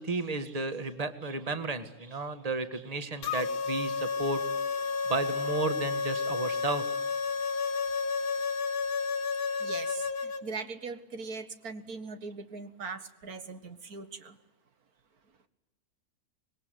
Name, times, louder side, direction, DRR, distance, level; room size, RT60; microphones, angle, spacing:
voice 1, 0.0-4.4 5.1-6.8, right 3 dB, 25° right, 10 dB, 1.8 m, -33 dB
sound 1, 3.2-10.4, left 4 dB, 75° left, 1.8 m, -31 dB
voice 2, 9.6-14.4, right 4 dB, 80° right, 10 dB, 2.1 m, -40 dB
26.0 x 21.5 x 9.3 m, 0.94 s
omnidirectional pair, 1.6 m